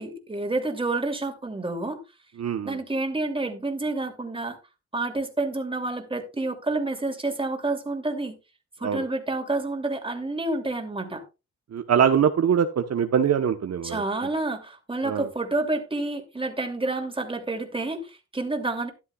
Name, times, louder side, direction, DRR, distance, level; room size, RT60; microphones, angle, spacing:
voice 1, 0.0-2.0 2.6-4.6 4.9-8.4 8.8-11.2 13.8-18.9, right 2 dB, 20° right, 2.7 m, -29 dB
voice 2, 2.4-2.8 8.8-9.0 11.7-14.0 15.0-15.3, right 8 dB, 60° right, 1.0 m, -23 dB
13.0 x 11.0 x 2.3 m
cardioid pair, 85°, 29 cm